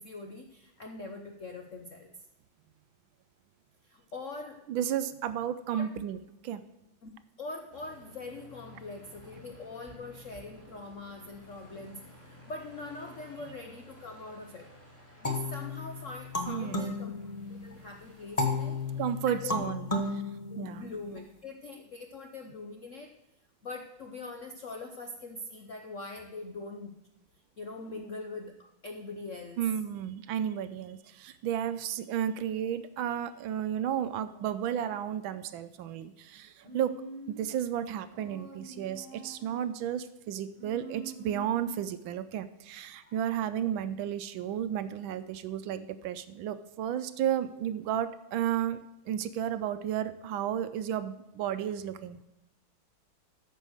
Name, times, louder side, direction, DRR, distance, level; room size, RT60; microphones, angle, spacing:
voice 1, 0.0-2.1 3.8-4.7 5.7-5.9 7.0-7.1 7.4-14.7 15.2-17.1 17.5-18.8 19.3-19.6 20.5-23.1 23.6-26.9 27.6-29.6 43.0-43.2, left 3 dB, 65° left, 4 dB, 0.7 m, -43 dB
voice 2, 4.7-6.6 16.5-17.0 19.0-19.9 20.1-20.2 20.6-20.9 29.6-36.9 37.3-48.8 49.1-52.2, right 10 dB, 75° right, 12 dB, 1.3 m, -33 dB
Aircraft, 7.7-19.2, left 1 dB, 5° left, 2.4 m, -54 dB
sound 1, 15.2-17.7 18.4-21.2, left 3 dB, 25° left, 0.8 m, -33 dB
Human voice, 36.6-37.6 38.1-39.7 40.5-41.8, right 3 dB, 25° right, 1.3 m, -46 dB
13.5 x 5.5 x 6.4 m, 0.94 s
omnidirectional pair, 2.4 m